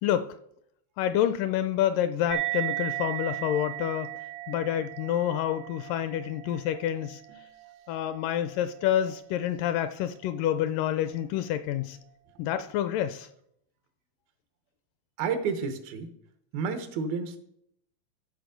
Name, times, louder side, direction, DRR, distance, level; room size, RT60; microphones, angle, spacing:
voice 1, 1.0-4.1 4.5-7.2 7.9-12.0 12.4-13.3, left 11 dB, 80° left, 11 dB, 2.0 m, -28 dB
sound 1, 2.3-9.2, right 20 dB, 70° right, 1.4 m, -37 dB
voice 2, 15.2-16.1 16.5-17.4, right 5 dB, 85° right, 8 dB, 2.9 m, -30 dB
13.0 x 6.5 x 5.1 m, 0.74 s
omnidirectional pair, 4.1 m